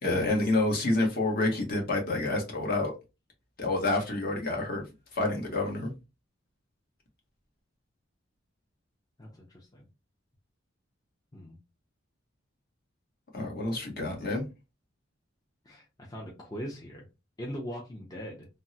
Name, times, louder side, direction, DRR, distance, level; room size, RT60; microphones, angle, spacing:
voice 1, 0.0-2.9 3.6-4.8 5.1-5.9 13.3-14.4, left 2 dB, 50° left, 1.0 m, -28 dB
voice 2, 9.2-9.8 11.3-11.6 15.6-17.1 17.4-18.5, equal, 20° left, 0.5 m, -41 dB
3.5 x 2.0 x 2.7 m
head